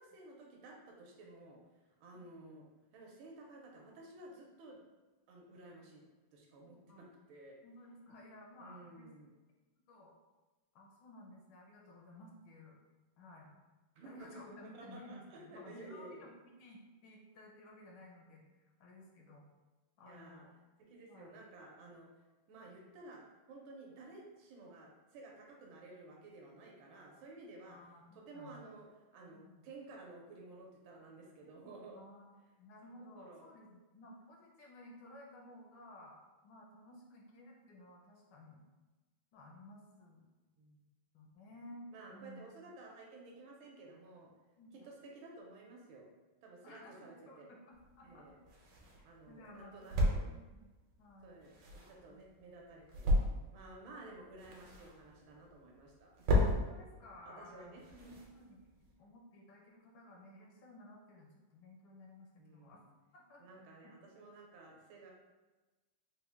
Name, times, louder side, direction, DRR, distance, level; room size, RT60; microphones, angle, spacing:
voice 1, 0.0-1.6 2.0-2.7 2.9-4.8 5.3-6.0 6.3-7.6 8.6-9.3 14.0-16.3 18.9-19.0 20.0-20.5 20.9-22.1 22.5-23.2 23.5-27.8 28.1-32.0 33.2-33.5 40.6-40.8 41.9-44.3 44.7-46.1 46.4-47.5 48.0-48.4 49.0-50.3 51.2-53.1 53.5-56.6 57.2-58.4 62.4-62.9 63.4-65.1, right 2 dB, 85° right, -1 dB, 1.5 m, -54 dB
voice 2, 7.6-9.1 9.9-10.1 10.7-12.8 13.2-13.5 14.0-18.4 18.8-19.4 20.0-20.5 21.1-21.4 27.7-28.6 29.3-29.6 32.0-36.2 36.4-38.6 39.3-40.3 41.1-42.4 44.6-44.9 46.6-48.3 49.3-50.7 51.0-51.3 52.1-52.2 56.5-62.8 63.1-63.4 63.8-63.9, left 1 dB, 75° left, -1 dB, 1.4 m, -56 dB
sound 1, 47.7-58.9, left 1 dB, 65° right, 1.3 m, -37 dB
4.1 x 2.1 x 3.4 m, 1.2 s
omnidirectional pair, 2.2 m